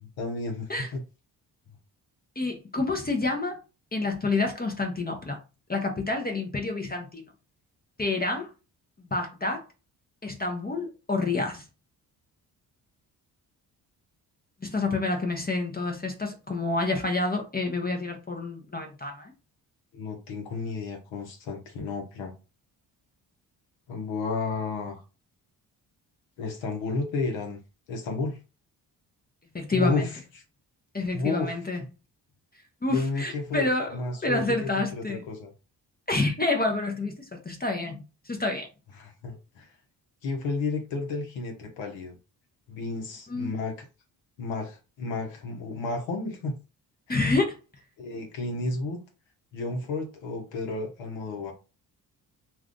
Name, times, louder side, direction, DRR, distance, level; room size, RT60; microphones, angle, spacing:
voice 1, 0.2-1.0 19.9-22.3 23.9-25.0 26.4-27.6 27.9-28.4 29.7-30.2 31.1-31.9 32.9-35.5 39.0-39.7 40.2-42.2 42.7-43.9 44.4-46.6 47.1-47.2 48.0-49.0 49.5-51.5, left 3 dB, 70° left, 1.0 m, -32 dB
voice 2, 2.4-3.6 3.9-5.4 5.7-7.3 8.0-8.5 9.0-9.6 10.2-11.7 14.6-19.3 29.5-30.1 30.9-31.8 32.8-35.2 36.1-38.7 43.3-43.5 47.1-47.6, left 3 dB, 20° left, 0.8 m, -28 dB
2.5 x 2.4 x 3.6 m
hypercardioid pair, 50°, 47 cm